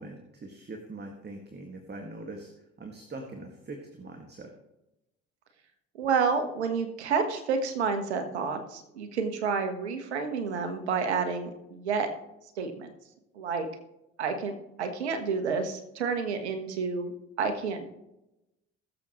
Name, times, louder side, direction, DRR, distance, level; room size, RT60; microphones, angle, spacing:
voice 1, 0.0-2.5 2.8-4.5, right 2 dB, 30° right, 3 dB, 1.9 m, -42 dB
voice 2, 6.0-12.1 12.6-12.9 13.3-13.7 14.2-17.1 17.4-17.9, right 5 dB, 90° right, 7 dB, 1.4 m, -29 dB
20.5 x 7.5 x 3.1 m, 0.93 s
hypercardioid pair, 60°, 32 cm